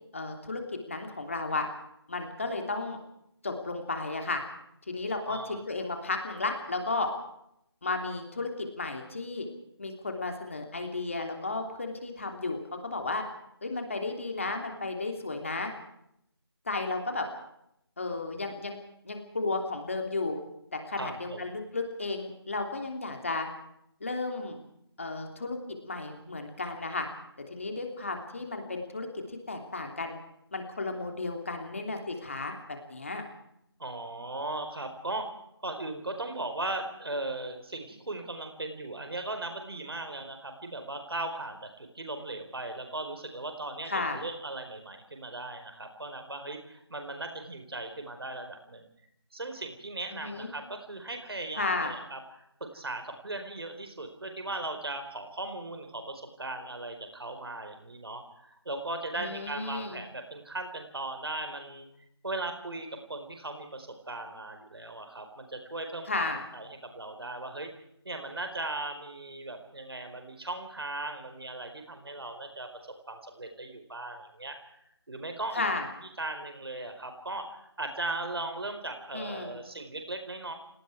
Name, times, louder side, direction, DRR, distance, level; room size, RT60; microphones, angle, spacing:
voice 1, 0.1-1.7 2.1-3.0 3.4-4.4 4.9-7.1 7.8-9.5 9.8-13.2 13.6-15.7 16.6-17.3 18.0-18.8 19.0-20.4 20.7-23.5 24.0-24.6 25.0-27.1 27.5-30.2 30.5-33.2 43.9-44.2 50.1-50.5 51.5-51.9 59.2-60.0 66.0-66.4 75.5-75.9 79.1-79.6, left 3 dB, 30° left, 4 dB, 3.2 m, -33 dB
voice 2, 5.2-5.6 20.9-21.4 33.8-35.3 35.6-48.9 49.3-52.2 52.6-61.9 62.2-66.3 66.5-67.7 68.0-72.7 73.1-74.7 75.1-75.6 76.2-80.5, right 2 dB, 65° right, 6 dB, 4.6 m, -38 dB
29.5 x 19.0 x 4.8 m, 0.76 s
figure-of-eight pair, 180°, 14 cm